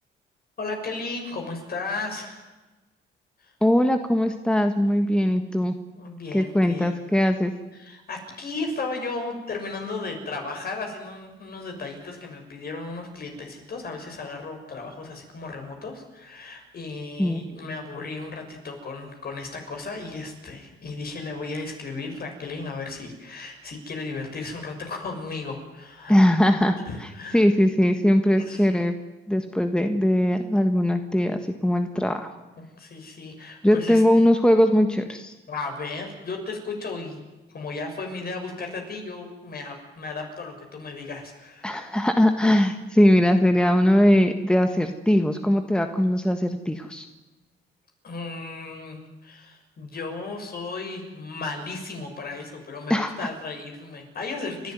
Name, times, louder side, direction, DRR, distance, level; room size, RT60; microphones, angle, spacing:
voice 1, 0.6-2.5 3.4-3.5 6.0-6.9 7.7-26.1 26.9-27.4 28.4-28.7 32.6-34.0 35.5-41.7 48.0-54.7, left 3 dB, 50° left, 3 dB, 6.5 m, -35 dB
voice 2, 3.6-5.7 6.3-7.5 17.2-17.4 26.1-26.8 27.3-28.9 29.3-32.3 33.6-35.3 41.6-47.1 52.9-53.3, left 1 dB, 5° left, 7 dB, 1.5 m, -20 dB
30.0 x 12.0 x 9.5 m, 1.1 s
cardioid pair, 90°, 20 cm